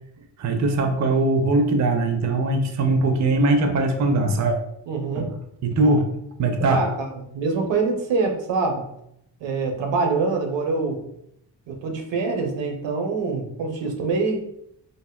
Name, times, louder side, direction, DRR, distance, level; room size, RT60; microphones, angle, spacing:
voice 1, 0.4-4.6 5.2-5.3 5.6-6.1 6.4-6.8, right 2 dB, 45° right, 5 dB, 0.4 m, -21 dB
voice 2, 4.9-5.3 6.7-7.1 7.3-8.9 9.4-11.0 11.7-14.4, right 4 dB, 85° right, 3 dB, 0.7 m, -25 dB
3.4 x 2.1 x 2.2 m, 0.75 s
cardioid pair, 85°, 43 cm